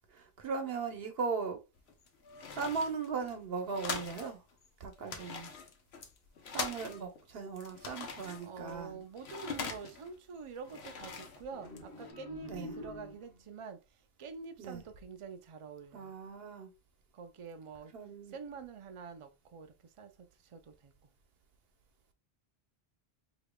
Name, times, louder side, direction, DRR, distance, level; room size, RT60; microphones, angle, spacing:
voice 1, 0.1-1.6 2.5-4.4 4.8-5.5 6.5-9.0 12.5-12.7 14.6-14.8 15.9-16.7 17.9-18.3, right 5 dB, 70° right, 1.1 m, -38 dB
sound 1, 1.8-4.3 4.6-4.7 4.9-7.2 7.6-10.1 10.6-12.1, left 5 dB, 90° left, 1.0 m, -43 dB
voice 2, 8.4-13.8 14.2-16.1 17.1-17.9 18.3-20.1 20.5-20.9, right 5 dB, 45° right, 0.4 m, -46 dB
sound 2, 11.5-13.6, left 1 dB, 70° left, 1.2 m, -47 dB
5.0 x 2.9 x 2.2 m
omnidirectional pair, 1.1 m